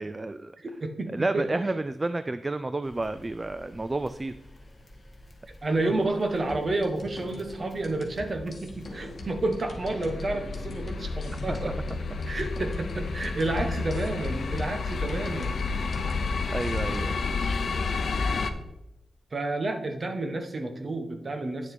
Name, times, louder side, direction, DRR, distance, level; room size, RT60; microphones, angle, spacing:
voice 1, 0.0-0.5 1.1-4.3 5.8-5.9 11.5-11.6 15.9-16.2 16.5-17.2, right 2 dB, 20° right, 12 dB, 0.3 m, -30 dB
voice 2, 0.6-1.5 5.6-11.8 12.3-15.6 19.3-21.7, right 2 dB, 35° right, 6 dB, 1.1 m, -30 dB
sound 1, 2.8-9.5, left 1 dB, 15° left, 1.7 m, -51 dB
sound 2, 6.5-17.3, left 1 dB, 35° left, 2.2 m, -43 dB
sound 3, 8.8-18.5, left 4 dB, 65° left, 0.8 m, -31 dB
10.0 x 6.7 x 4.4 m, 0.92 s
wide cardioid pair, 145°, 0 cm